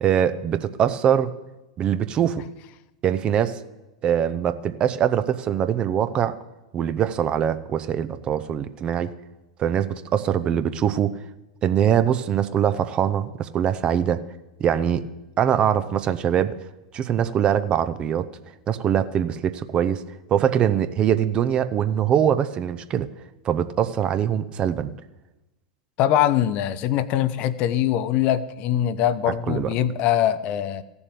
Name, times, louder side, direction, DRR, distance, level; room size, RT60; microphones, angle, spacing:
voice 1, 0.0-1.3 1.8-2.4 3.0-3.6 4.0-6.4 6.7-9.1 9.6-11.1 11.6-14.2 14.6-15.0 15.4-16.6 16.9-18.3 18.7-20.0 20.3-23.1 23.4-24.9 29.5-29.7, right 9 dB, 30° right, 12 dB, 0.7 m, -22 dB
voice 2, 26.0-30.8, left 11 dB, 40° left, 15 dB, 0.6 m, -22 dB
15.0 x 7.1 x 8.4 m, 1.0 s
figure-of-eight pair, 90°, 3 cm